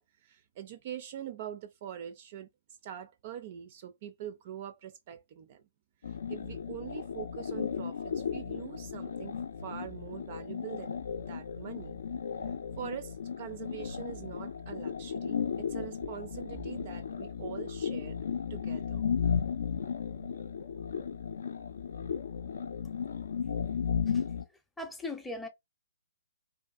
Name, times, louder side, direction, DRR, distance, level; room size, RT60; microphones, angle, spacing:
voice 1, 0.2-2.5 2.8-5.6 6.0-11.0 11.3-12.0 12.4-18.2 18.5-19.0, right 10 dB, 45° right, 0.3 m, -43 dB
sound 1, 6.0-24.4, left 7 dB, 70° left, 0.4 m, -35 dB
voice 2, 24.8-25.5, left 2 dB, 5° left, 0.5 m, -39 dB
2.5 x 2.3 x 2.3 m
figure-of-eight pair, 130°, 0 cm